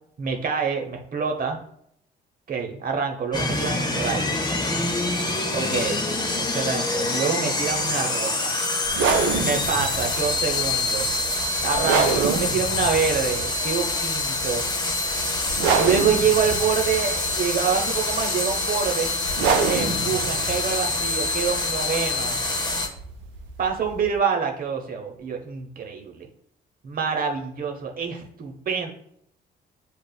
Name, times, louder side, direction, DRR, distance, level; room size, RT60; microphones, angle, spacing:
voice 1, 0.2-1.6 2.5-4.4 5.5-6.0 6.4-8.6 9.4-11.1 11.6-14.6 15.8-19.1 19.6-22.4 23.6-26.3 26.8-28.9, right 6 dB, 50° right, 3 dB, 0.9 m, -26 dB
sound 1, 3.3-22.9, left 2 dB, 20° left, 0.7 m, -26 dB
sound 2, 8.9-24.2, right 5 dB, 85° right, 0.5 m, -28 dB
6.5 x 2.4 x 2.3 m, 0.70 s
supercardioid pair, 70°, 19 cm